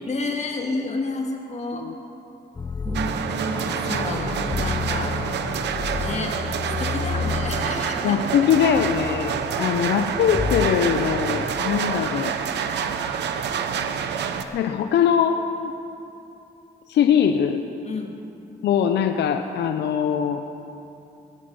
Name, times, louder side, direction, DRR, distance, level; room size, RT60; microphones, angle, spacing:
voice 1, 0.0-1.9 3.3-5.1 6.0-6.4 6.8-8.5 17.8-18.1, left 3 dB, 40° left, 2 dB, 2.0 m, -31 dB
sound 1, 2.6-11.5, left 5 dB, 25° left, 0.7 m, -31 dB
sound 2, 2.8-6.9, right 3 dB, 30° right, 1.4 m, -35 dB
sound 3, 2.9-14.4, right 7 dB, 85° right, 0.9 m, -27 dB
voice 2, 8.0-12.4 14.5-15.7 16.9-17.7 18.6-20.4, left 8 dB, 85° left, 7 dB, 0.6 m, -22 dB
18.0 x 11.0 x 5.4 m, 2.8 s
cardioid pair, 90°, 17 cm